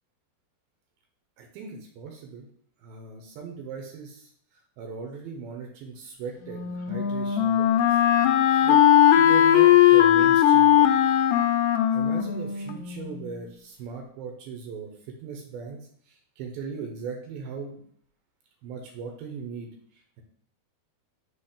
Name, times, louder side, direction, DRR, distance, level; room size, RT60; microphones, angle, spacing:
voice 1, 1.4-2.5 2.8-4.3 4.8-8.0 8.6-10.9 11.9-17.8 18.6-19.7, right 5 dB, 80° right, 2 dB, 2.7 m, -38 dB
Wind instrument woodwind instrument, 6.4-13.3, left 11 dB, 85° left, 1.8 m, -19 dB
5.4 x 4.4 x 5.0 m, 0.62 s
omnidirectional pair, 4.4 m